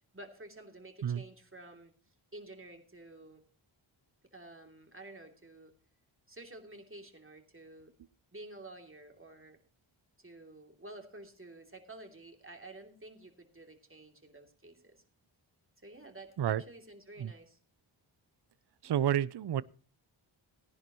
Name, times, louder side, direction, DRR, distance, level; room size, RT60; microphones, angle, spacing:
voice 1, 0.1-1.9 2.3-3.4 4.3-5.7 6.3-7.9 8.3-9.6 10.2-15.0 15.8-17.6 18.8-19.0, right 2 dB, 25° right, 2.9 m, -51 dB
voice 2, 18.8-19.6, right 10 dB, 55° right, 0.6 m, -30 dB
18.5 x 10.5 x 3.0 m
wide cardioid pair, 60°, 48 cm